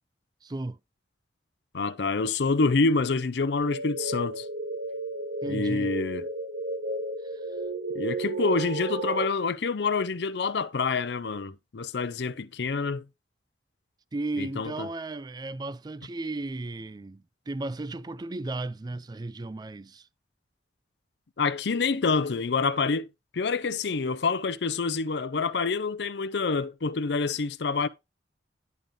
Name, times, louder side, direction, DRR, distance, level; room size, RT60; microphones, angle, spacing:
voice 1, 0.4-0.8 5.4-5.9 7.3-7.5 14.1-20.1, right 2 dB, 20° right, 0.3 m, -35 dB
voice 2, 1.7-4.5 5.5-6.3 7.9-13.0 14.4-14.9 21.4-23.1 23.3-27.9, left 4 dB, 65° left, 0.5 m, -27 dB
sound 1, 3.6-9.3, right 2 dB, 65° right, 0.7 m, -33 dB
10.5 x 3.6 x 5.2 m
head